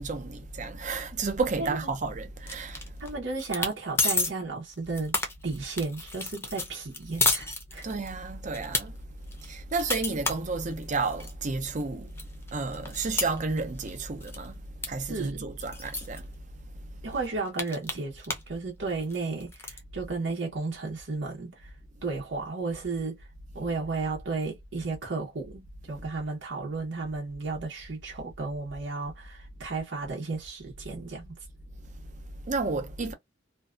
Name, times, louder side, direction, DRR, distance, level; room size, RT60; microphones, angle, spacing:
voice 1, 0.0-3.0 7.8-9.0 9.4-16.3 32.0-33.1, right 3 dB, 40° right, 0.6 m, -32 dB
voice 2, 1.6-1.9 3.0-5.2 5.4-7.9 15.1-15.5 17.0-21.7 22.0-23.3 23.5-31.4, right 3 dB, 75° right, 0.8 m, -33 dB
sound 1, 2.5-3.1 3.4-3.7 4.0-4.3 4.7-8.1 8.5-8.8 9.3-11.3 11.8-11.9 12.2-14.0 14.2-14.5 14.8-14.9 15.1-15.2 15.6-16.2 16.8-16.9 17.1-18.5 18.8-19.8, left 3 dB, 15° left, 0.6 m, -30 dB
2.6 x 2.3 x 2.4 m
head